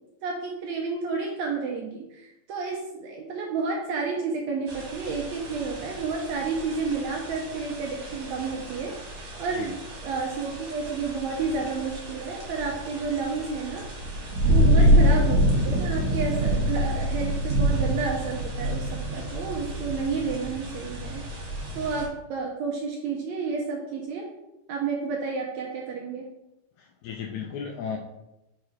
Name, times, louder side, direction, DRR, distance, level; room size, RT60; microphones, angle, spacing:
voice 1, 0.2-13.8 14.5-21.2 21.7-24.3 24.7-26.3, right 4 dB, 75° right, -1 dB, 1.7 m, -31 dB
sound 1, 4.7-22.1, equal, 60° right, 2.5 m, -27 dB
voice 2, 26.8-28.0, left 7 dB, 85° left, 2 dB, 1.7 m, -35 dB
5.5 x 4.8 x 4.5 m, 0.92 s
omnidirectional pair, 3.9 m